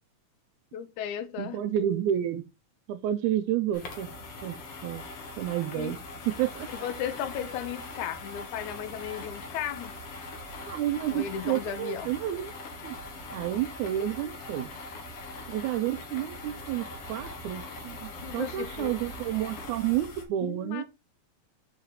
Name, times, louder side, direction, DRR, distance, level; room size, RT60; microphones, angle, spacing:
voice 1, 0.7-1.6 5.7-5.9 6.7-9.9 11.1-12.1 18.2-19.0 20.4-20.8, left 9 dB, 75° left, 2.2 m, -35 dB
voice 2, 1.4-2.5 2.9-4.1 4.4-4.6 4.8-5.0 5.4-6.0 6.3-6.7 10.7-12.5 12.8-13.0 13.3-14.7 15.5-20.8, right 12 dB, 80° right, 1.9 m, -30 dB
sound 1, 3.7-20.3, left 2 dB, 55° left, 2.0 m, -41 dB
5.3 x 4.1 x 5.5 m
omnidirectional pair, 3.6 m